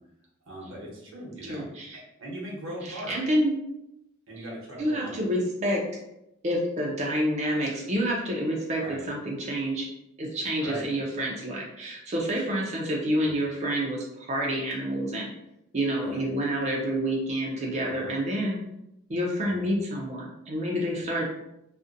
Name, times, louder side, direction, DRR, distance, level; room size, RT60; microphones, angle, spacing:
voice 1, 0.5-3.2 4.3-5.2 8.8-9.1 10.6-10.9 12.4-12.5 13.2-13.4 16.0-16.2 17.9-18.1 19.4-19.7, right 1 dB, 85° right, -3 dB, 0.8 m, -40 dB
voice 2, 1.5-2.0 2.8-3.5 4.8-5.8 6.4-9.9 10.2-15.3 15.7-18.6 19.1-21.2, equal, 35° right, -2 dB, 0.4 m, -28 dB
2.5 x 2.1 x 2.5 m, 0.85 s
head